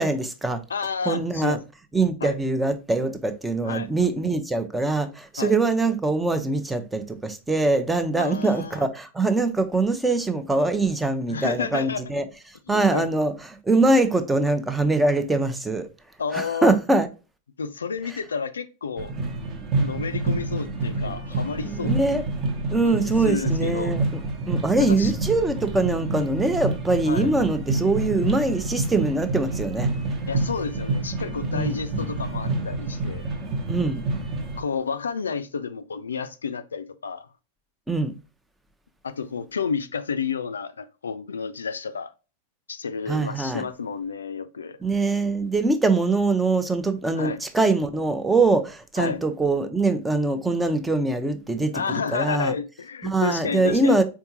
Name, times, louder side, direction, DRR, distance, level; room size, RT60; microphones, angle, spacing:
voice 1, 0.0-0.6 1.1-1.6 1.9-12.2 12.7-13.3 13.7-15.9 16.3-17.1 21.6-22.2 22.7-24.0 24.5-29.9 31.5-31.8 33.7-34.0 37.9-38.1 43.1-43.6 44.8-52.5 53.0-54.0, right 3 dB, 10° right, 0.6 m, -23 dB
voice 2, 0.7-1.6 2.2-2.4 3.6-3.9 5.4-5.5 8.2-8.9 11.3-12.0 12.7-13.1 16.2-16.7 17.6-19.1 19.8-22.0 22.8-23.9 24.8-25.1 27.1-27.3 30.3-33.2 34.6-37.3 39.0-42.1 42.7-44.8 47.1-47.4 49.0-49.2 51.7-54.0, left 5 dB, 70° left, 0.3 m, -30 dB
sound 1, 19.0-34.6, right 2 dB, 35° right, 0.9 m, -28 dB
4.4 x 3.6 x 2.8 m
figure-of-eight pair, 90°, 0 cm